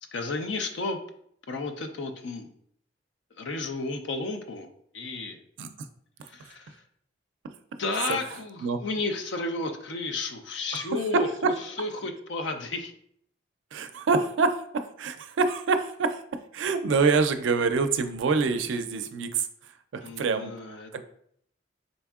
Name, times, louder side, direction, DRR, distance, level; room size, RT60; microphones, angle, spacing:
voice 1, 0.1-1.0 1.5-2.5 3.3-5.4 6.2-6.8 7.8-12.9 20.0-21.0, left 3 dB, 75° left, 6 dB, 0.5 m, -32 dB
voice 2, 13.7-16.2 16.5-19.5 19.9-20.5 20.9-21.0, right 4 dB, 85° right, 9 dB, 0.4 m, -26 dB
4.0 x 3.4 x 2.3 m, 0.67 s
head